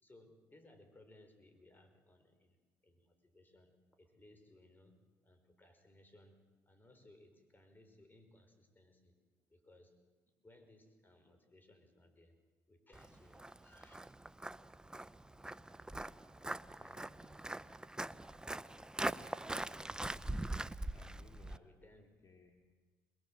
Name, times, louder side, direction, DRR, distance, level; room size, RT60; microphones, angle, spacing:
voice 1, 0.0-2.6 2.8-5.0 5.2-9.1 9.5-10.0 10.4-12.4 12.7-14.0 21.5-22.0, left 1 dB, 25° left, 7 dB, 4.8 m, -63 dB
Walk footsteps, 12.9-21.6, right 1 dB, 10° right, 0.8 m, -42 dB
voice 2, 16.8-17.5 20.8-21.7 21.9-22.7, left 4 dB, 45° left, 4 dB, 2.6 m, -64 dB
23.5 x 21.5 x 7.7 m, 1.3 s
supercardioid pair, 60°, 8 cm